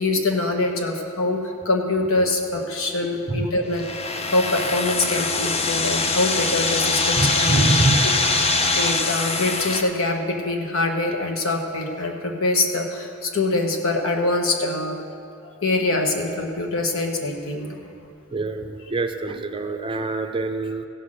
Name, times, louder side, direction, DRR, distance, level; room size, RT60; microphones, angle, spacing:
voice 1, 0.0-1.4 1.6-7.7 8.7-14.9 15.4-17.9, left 2 dB, 75° left, 2 dB, 1.3 m, -24 dB
sound 1, 3.7-9.8, left 3 dB, 30° left, 0.7 m, -23 dB
voice 2, 7.2-8.0 18.3-20.9, right 2 dB, 25° right, 7 dB, 0.5 m, -24 dB
15.5 x 5.8 x 6.5 m, 2.5 s
head